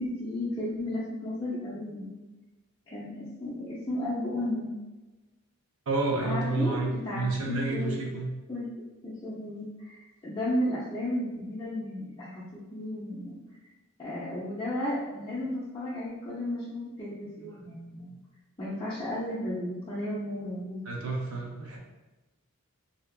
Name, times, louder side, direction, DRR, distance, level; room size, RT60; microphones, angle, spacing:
voice 1, 0.0-2.2 2.9-4.7 6.2-8.0 8.5-8.7 9.0-13.4 14.0-18.2 18.6-20.9, left 1 dB, 20° left, -10 dB, 0.5 m, -34 dB
voice 2, 5.9-8.3 20.9-21.8, right 3 dB, 70° right, -1 dB, 0.6 m, -30 dB
2.7 x 2.3 x 2.3 m, 1.1 s
head